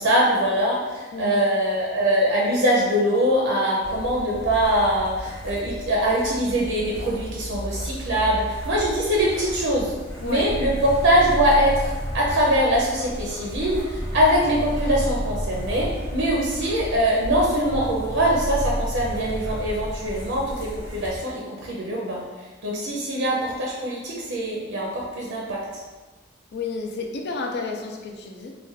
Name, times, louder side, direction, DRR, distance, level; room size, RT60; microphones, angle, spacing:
voice 1, 0.0-10.0 10.2-25.8, equal, 75° right, -3 dB, 0.5 m, -23 dB
sound 1, 3.8-21.2, equal, 80° left, 1.0 m, -36 dB
sound 2, 10.5-20.5, equal, 20° right, 0.4 m, -32 dB
voice 2, 26.5-28.6, left 4 dB, 60° left, 2 dB, 0.4 m, -31 dB
2.4 x 2.2 x 3.9 m, 1.3 s
head